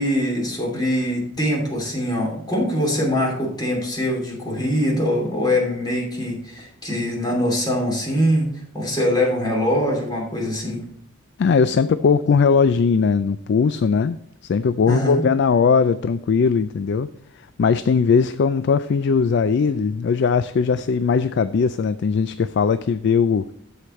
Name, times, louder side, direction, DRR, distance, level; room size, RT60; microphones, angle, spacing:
voice 1, 0.0-10.8 14.9-15.2, equal, 20° left, -2 dB, 2.7 m, -23 dB
voice 2, 11.4-14.2 14.4-17.1 17.6-23.5, left 5 dB, 55° left, 13 dB, 0.3 m, -19 dB
14.5 x 5.0 x 3.1 m, 0.74 s
head